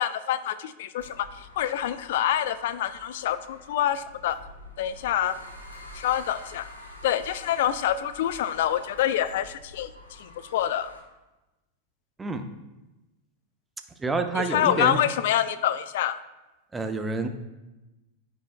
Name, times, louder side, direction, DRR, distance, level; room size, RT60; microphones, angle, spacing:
voice 1, 0.0-4.4 4.8-5.4 5.9-6.7 7.0-10.9 14.4-16.2, left 11 dB, 55° left, 13 dB, 0.4 m, -26 dB
sound 1, 1.0-11.0, left 1 dB, 80° left, 1.6 m, -47 dB
voice 2, 14.0-15.0 16.7-17.3, right 3 dB, 10° right, 7 dB, 0.7 m, -28 dB
14.0 x 5.3 x 2.2 m, 1.0 s
figure-of-eight pair, 90°, 0 cm